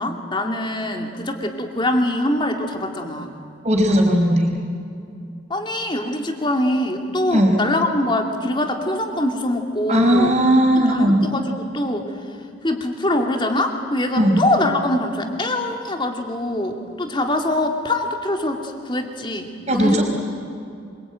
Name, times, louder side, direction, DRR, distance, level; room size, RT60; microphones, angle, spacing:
voice 1, 0.0-3.3 5.5-10.4 10.8-12.1 12.6-20.0, left 1 dB, 25° left, 4 dB, 2.4 m, -23 dB
voice 2, 3.6-4.5 7.3-7.5 9.9-11.2 14.1-14.4 19.7-20.0, equal, 35° right, 1 dB, 5.0 m, -17 dB
26.0 x 23.5 x 9.1 m, 2.5 s
head